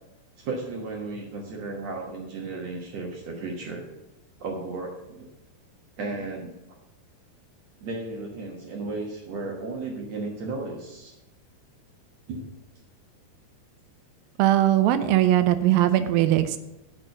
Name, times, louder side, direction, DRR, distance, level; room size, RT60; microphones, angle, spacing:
voice 1, 0.4-3.9 4.4-5.3 6.0-6.5 7.8-11.1 12.3-12.5, right 3 dB, 65° right, 0 dB, 1.6 m, -34 dB
voice 2, 14.4-16.6, right 13 dB, 85° right, 10 dB, 2.1 m, -20 dB
9.7 x 6.2 x 6.5 m, 0.97 s
omnidirectional pair, 4.8 m